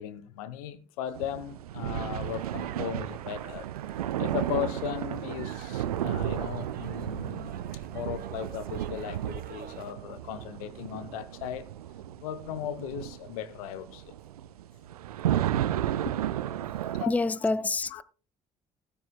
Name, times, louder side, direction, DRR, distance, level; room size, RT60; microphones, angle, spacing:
voice 1, 0.0-3.7 4.2-7.6 7.9-11.7 12.2-14.1 16.0-16.3 16.8-17.1 17.9-18.0, left 10 dB, 70° left, 0.7 m, -37 dB
sound 1, 1.1-17.1, right 12 dB, 80° right, 0.4 m, -33 dB
sound 2, 2.0-9.9, right 10 dB, 50° right, 0.8 m, -49 dB
voice 2, 17.0-18.0, left 3 dB, 10° left, 0.4 m, -27 dB
17.5 x 10.0 x 2.2 m
figure-of-eight pair, 45°, 19 cm